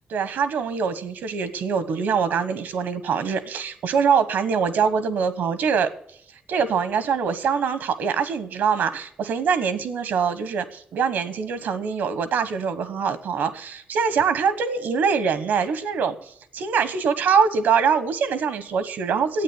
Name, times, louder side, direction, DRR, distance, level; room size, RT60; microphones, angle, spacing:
voice 1, 0.1-5.9 6.5-19.4, right 6 dB, 80° right, 13 dB, 1.2 m, -23 dB
10.0 x 8.7 x 8.5 m, 0.68 s
cardioid pair, 115°, 3 cm